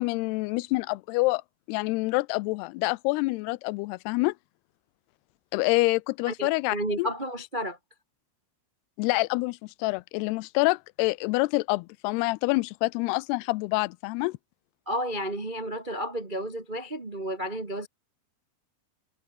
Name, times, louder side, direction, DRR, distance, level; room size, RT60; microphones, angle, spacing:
voice 1, 0.0-1.4 1.7-4.3 5.5-7.1 9.0-14.4, left 23 dB, 90° left, 2.6 m, -27 dB
voice 2, 6.3-7.8 14.9-17.9, equal, 50° right, 0.5 m, -32 dB
omnidirectional pair, 4.6 m